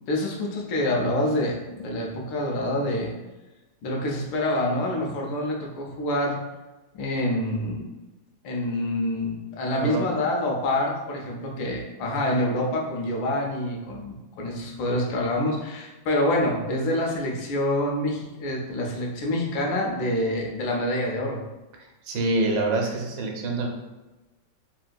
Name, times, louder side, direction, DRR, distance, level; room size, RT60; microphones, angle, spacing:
voice 1, 0.1-3.1 3.8-6.4 6.9-7.9 8.4-21.4, left 1 dB, 85° left, -1 dB, 1.4 m, -26 dB
voice 2, 22.0-23.7, right 2 dB, 80° right, 1 dB, 1.3 m, -25 dB
3.7 x 2.5 x 2.2 m, 1.1 s
omnidirectional pair, 2.0 m